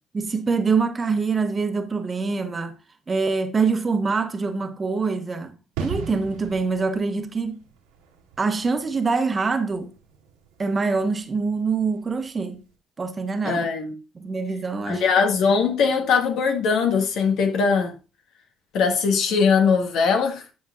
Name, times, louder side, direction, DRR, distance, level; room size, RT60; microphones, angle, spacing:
voice 1, 0.1-2.8 3.1-7.6 8.4-9.9 10.6-12.6 13.0-13.7 14.1-15.0, right 4 dB, 30° right, 1.2 m, -25 dB
sound 1, 5.8-12.3 12.5-12.7, right 5 dB, 85° right, 1.9 m, -39 dB
voice 2, 13.4-14.0 14.9-17.9 18.7-20.4, left 5 dB, 70° left, 1.7 m, -21 dB
11.0 x 5.4 x 2.4 m
hypercardioid pair, 65°, 0 cm